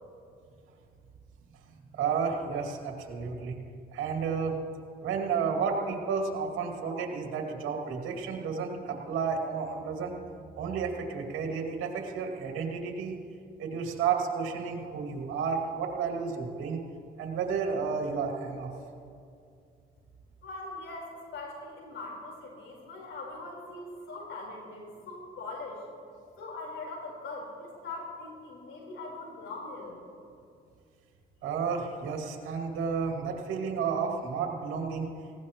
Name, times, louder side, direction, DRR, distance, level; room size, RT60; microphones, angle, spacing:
voice 1, 1.9-3.5 3.9-4.6 5.0-10.2 10.6-13.2 13.6-16.8 17.2-18.7 31.4-35.1, right 5 dB, 75° right, 2 dB, 2.3 m, -31 dB
voice 2, 20.4-25.8 26.4-30.0, left 2 dB, 70° left, -2 dB, 4.2 m, -41 dB
19.5 x 16.5 x 3.0 m, 2.4 s
supercardioid pair, 60°, 21 cm